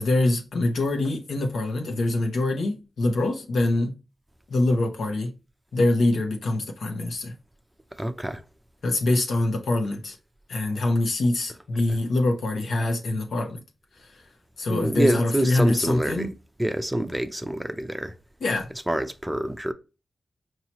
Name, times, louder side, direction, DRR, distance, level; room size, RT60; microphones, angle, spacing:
voice 1, 0.0-4.0 4.5-5.3 5.7-7.3 8.8-10.2 10.5-13.6 14.0-14.1 14.6-16.3 18.4-18.7, left 2 dB, 90° left, 0.9 m, -24 dB
voice 2, 8.0-8.4 14.7-16.3 16.6-18.1 18.9-19.7, right 1 dB, 10° right, 0.5 m, -26 dB
4.7 x 2.9 x 2.9 m
wide cardioid pair, 80°, 0 cm